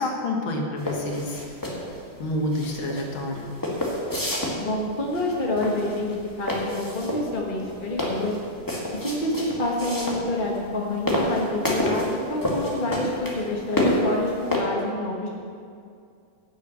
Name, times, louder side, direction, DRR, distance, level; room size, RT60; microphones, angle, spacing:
voice 1, 0.0-1.4 2.2-3.5, left 1 dB, 80° left, 1 dB, 2.3 m, -28 dB
sound 1, 0.8-14.6, equal, 10° left, 1.9 m, -29 dB
voice 2, 4.6-8.4 8.9-15.3, left 2 dB, 25° left, -2 dB, 1.4 m, -27 dB
12.0 x 7.0 x 8.0 m, 2.3 s
omnidirectional pair, 2.2 m